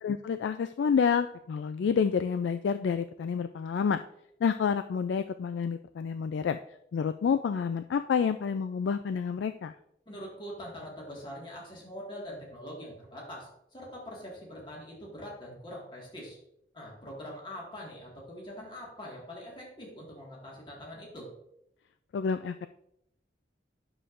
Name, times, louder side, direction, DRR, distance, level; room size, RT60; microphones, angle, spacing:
voice 1, 0.0-4.0 4.4-6.6 6.9-9.7 22.1-22.7, left 6 dB, 85° left, 10 dB, 0.3 m, -29 dB
voice 2, 10.1-16.4 16.7-21.3, equal, 25° left, -3 dB, 1.8 m, -43 dB
9.8 x 6.9 x 2.5 m, 0.76 s
head